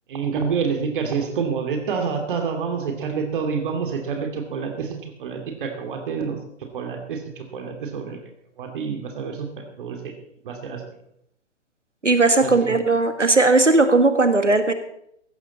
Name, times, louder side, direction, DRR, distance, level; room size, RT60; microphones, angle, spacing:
voice 1, 0.1-6.4 6.7-8.2 8.6-10.2 10.4-10.8 12.4-12.7, right 5 dB, 45° right, 4 dB, 2.6 m, -28 dB
voice 2, 12.0-14.7, right 3 dB, 85° right, 8 dB, 1.9 m, -17 dB
16.5 x 13.0 x 4.2 m, 0.73 s
figure-of-eight pair, 120°, 35 cm